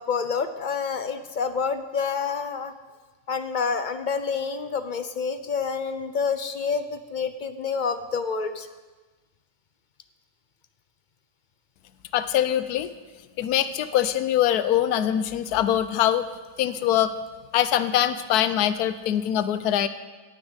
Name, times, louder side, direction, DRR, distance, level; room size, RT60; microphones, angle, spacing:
voice 1, 0.0-2.7 3.3-8.7, left 5 dB, 55° left, 10 dB, 0.5 m, -28 dB
voice 2, 12.1-12.9 13.4-16.3 16.6-17.1 17.5-19.9, left 11 dB, 85° left, 13 dB, 1.2 m, -23 dB
17.0 x 7.3 x 8.0 m, 1.3 s
omnidirectional pair, 1.6 m